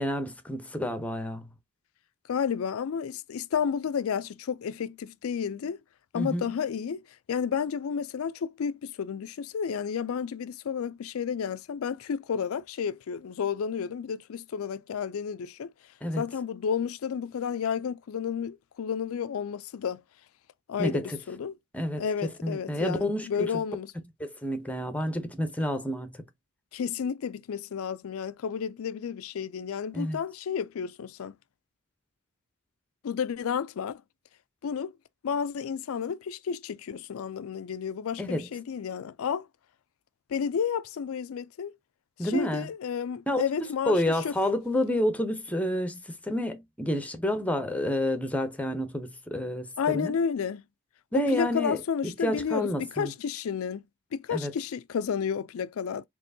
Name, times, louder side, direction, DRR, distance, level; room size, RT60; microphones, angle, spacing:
voice 1, 0.0-1.5 6.1-6.5 16.0-16.2 20.8-21.2 21.7-22.0 22.4-23.5 24.2-26.1 29.9-30.2 38.2-38.5 42.2-42.7 43.3-43.4 43.9-50.1 51.1-51.8 52.0-53.1 54.3-54.5, left 1 dB, 5° left, 0.7 m, -29 dB
voice 2, 2.3-5.8 6.1-7.0 7.3-15.7 16.2-20.0 20.7-21.6 22.0-23.9 26.7-31.4 33.0-34.0 34.6-34.9 35.2-39.5 40.3-41.7 42.2-44.4 49.8-50.6 51.1-53.8 54.1-56.1, left 7 dB, 70° left, 0.4 m, -31 dB
4.3 x 3.0 x 2.6 m
head